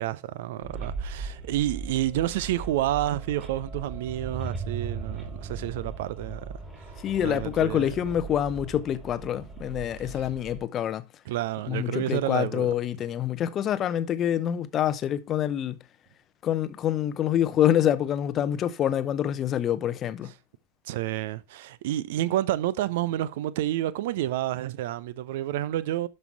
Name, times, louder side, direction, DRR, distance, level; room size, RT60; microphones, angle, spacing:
voice 1, 0.0-6.5 7.2-7.9 10.1-10.2 11.3-12.7 20.9-26.1, right 13 dB, 50° right, 0.6 m, -29 dB
sound 1, 0.6-10.6, right 4 dB, 15° right, 2.7 m, -38 dB
voice 2, 7.0-11.0 11.7-15.8 16.4-20.3, left 10 dB, 30° left, 0.7 m, -26 dB
12.0 x 5.5 x 3.3 m
figure-of-eight pair, 90°, 0 cm